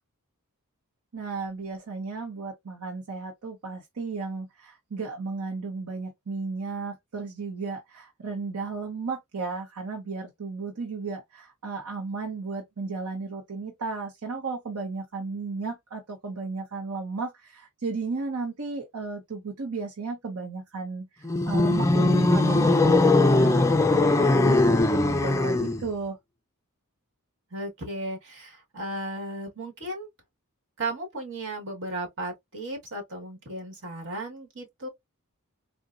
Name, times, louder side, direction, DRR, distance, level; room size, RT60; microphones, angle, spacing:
voice 1, 1.1-21.0 21.5-26.2, right 4 dB, 80° right, 0.8 m, -34 dB
sound 1, 21.2-25.9, left 2 dB, 15° left, 0.3 m, -20 dB
voice 2, 27.5-30.1 30.8-34.9, right 1 dB, 55° right, 1.5 m, -35 dB
3.8 x 2.2 x 2.4 m
head